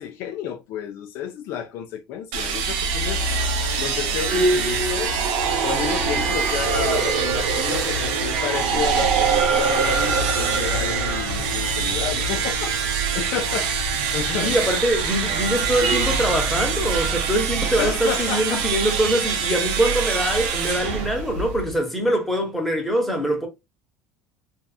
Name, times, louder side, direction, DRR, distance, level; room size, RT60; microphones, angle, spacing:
voice 1, 0.0-3.2 3.8-5.2 5.6-14.6 17.6-18.6, left 8 dB, 55° left, 0.4 m, -31 dB
sound 1, 2.3-21.8, right 5 dB, 90° right, 0.6 m, -25 dB
sound 2, 3.1-17.9, left 2 dB, 80° left, 1.0 m, -38 dB
sound 3, 4.3-11.2, right 5 dB, 45° right, 0.5 m, -25 dB
voice 2, 14.3-23.5, equal, ahead, 0.7 m, -23 dB
2.6 x 2.4 x 2.3 m
cardioid pair, 150°, 5 cm